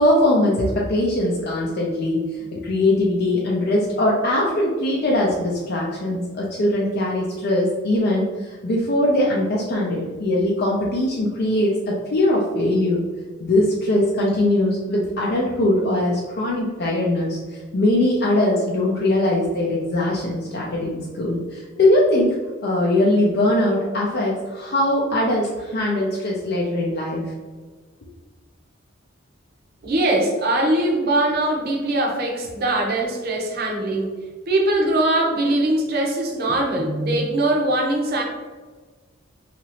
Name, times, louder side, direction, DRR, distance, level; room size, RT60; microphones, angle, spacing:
voice 1, 0.0-2.2 2.5-13.0 13.4-22.4 22.6-27.2, left 1 dB, 50° left, -4 dB, 0.4 m, -21 dB
voice 2, 29.8-34.1 34.5-38.2, right 1 dB, 50° right, 0 dB, 0.6 m, -21 dB
2.9 x 2.5 x 2.8 m, 1.4 s
head